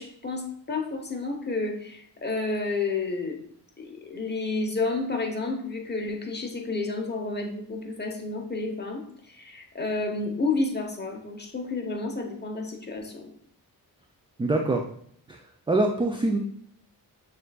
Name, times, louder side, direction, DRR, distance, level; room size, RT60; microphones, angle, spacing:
voice 1, 0.0-3.4 3.8-13.3, left 3 dB, 25° left, 2 dB, 0.9 m, -30 dB
voice 2, 14.4-14.8 15.3-15.4 15.7-16.4, right 2 dB, 15° right, 2 dB, 0.3 m, -24 dB
6.4 x 2.6 x 2.3 m, 0.65 s
cardioid pair, 70°, 40 cm